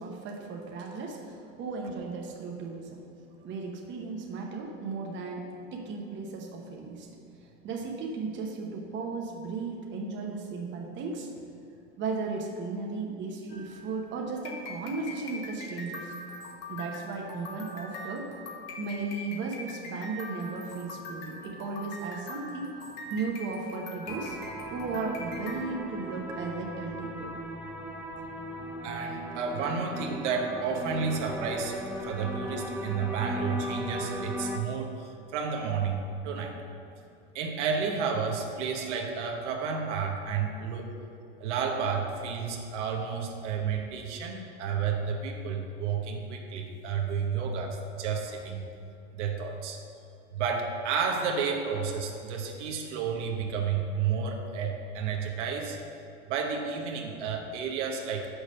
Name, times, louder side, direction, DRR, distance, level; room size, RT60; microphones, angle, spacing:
voice 1, 0.0-3.0 3.4-7.1 7.4-11.3 12.0-16.1 16.7-18.3 18.7-22.7 23.1-24.4 24.7-27.3, right 4 dB, 30° right, 0 dB, 1.0 m, -35 dB
sound 1, 13.5-25.5, left 2 dB, 45° left, 1.2 m, -43 dB
sound 2, 24.1-34.6, equal, 5° right, 0.4 m, -37 dB
voice 2, 28.8-36.6 37.3-40.9 41.4-48.6 49.1-49.8 50.3-55.8 56.3-58.3, right 6 dB, 70° right, 2 dB, 1.1 m, -31 dB
6.4 x 5.0 x 6.4 m, 2.7 s
supercardioid pair, 130°, 36 cm